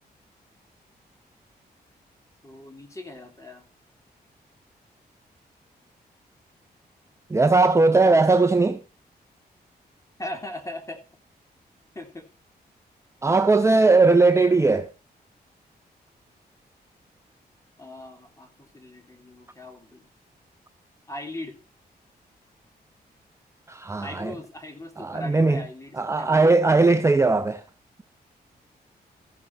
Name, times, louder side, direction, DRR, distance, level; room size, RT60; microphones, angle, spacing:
voice 1, 2.4-3.7 10.2-11.0 11.9-12.3 14.5-14.6 17.8-20.1 21.1-21.6 24.0-26.4, left 1 dB, 20° left, 3.2 m, -39 dB
voice 2, 7.3-8.8 13.2-14.9 23.7-24.3 25.0-25.6 26.0-27.6, right 3 dB, 15° right, 0.6 m, -19 dB
15.0 x 6.4 x 4.7 m
cardioid pair, 80°, 17 cm